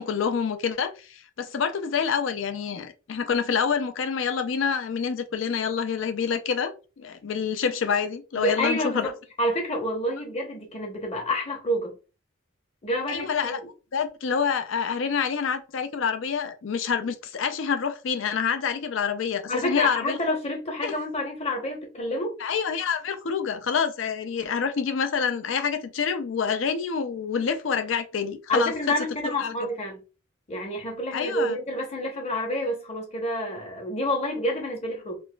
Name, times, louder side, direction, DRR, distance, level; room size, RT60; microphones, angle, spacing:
voice 1, 0.0-6.7 7.0-9.1 13.1-13.6 13.9-20.2 20.8-20.9 22.4-28.9 29.2-29.5 31.1-31.6, left 6 dB, 70° left, 0.4 m, -27 dB
voice 2, 8.3-12.0 12.8-13.6 19.5-22.3 28.5-30.0 30.5-35.2, equal, 30° left, 0.9 m, -28 dB
3.9 x 2.4 x 2.3 m
head